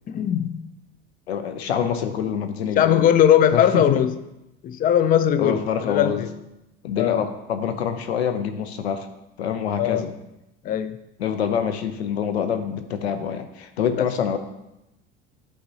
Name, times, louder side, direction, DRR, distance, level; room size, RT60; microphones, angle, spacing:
voice 1, 0.1-0.6 2.8-4.1 4.6-6.3 7.0-7.2 9.8-10.0 10.6-11.0 14.0-14.1, left 10 dB, 30° left, 12 dB, 0.4 m, -19 dB
voice 2, 1.3-3.0 3.5-4.1 5.4-6.3 6.8-9.1 9.4-10.1 11.2-14.4, left 8 dB, 85° left, 8 dB, 0.6 m, -26 dB
8.6 x 4.9 x 2.8 m, 0.91 s
hypercardioid pair, 75°, 31 cm